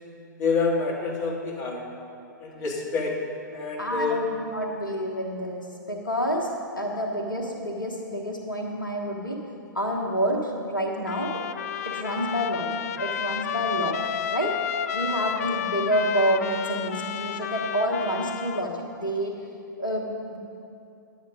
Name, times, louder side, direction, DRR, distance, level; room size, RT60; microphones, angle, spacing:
voice 1, 0.4-1.9 2.4-3.2 3.5-4.2, left 4 dB, 30° left, -3 dB, 2.0 m, -27 dB
voice 2, 3.8-6.5 6.8-9.4 9.7-11.4 11.8-12.7 13.0-14.0 14.3-14.6 14.9-19.4 19.8-20.4, equal, 80° left, 0 dB, 1.2 m, -28 dB
Trumpet, 11.1-18.7, left 8 dB, 50° left, 0.4 m, -31 dB
10.5 x 8.6 x 4.9 m, 2.6 s
figure-of-eight pair, 110°, 11 cm